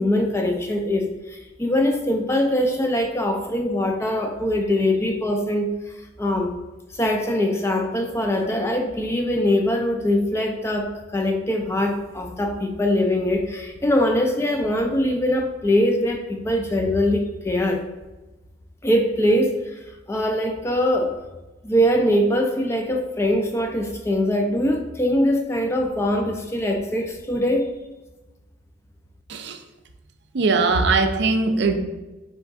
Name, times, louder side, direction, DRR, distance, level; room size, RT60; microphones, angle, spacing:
voice 1, 0.0-5.7 6.2-6.5 6.9-17.8 18.8-19.8 20.1-21.2 21.6-27.7, left 1 dB, 15° left, 3 dB, 0.4 m, -22 dB
voice 2, 30.3-31.8, right 3 dB, 60° right, 6 dB, 0.5 m, -20 dB
4.1 x 3.6 x 3.5 m, 1.1 s
head